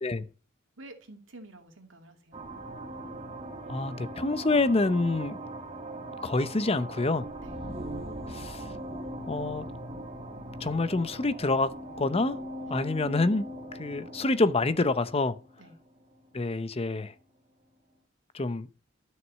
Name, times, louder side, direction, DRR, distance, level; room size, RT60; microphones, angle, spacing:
voice 1, 0.8-2.4 7.4-7.6 12.7-12.8 15.6-15.8, right 2 dB, 85° right, 2.5 m, -49 dB
sound 1, 2.3-16.5, right 1 dB, 30° right, 1.9 m, -40 dB
voice 2, 3.7-5.4 6.2-7.3 8.3-8.7 9.3-9.7 10.6-12.4 12.7-13.5 13.8-15.4 16.3-17.1 18.3-18.7, left 2 dB, 30° left, 0.7 m, -27 dB
12.5 x 6.3 x 7.4 m
head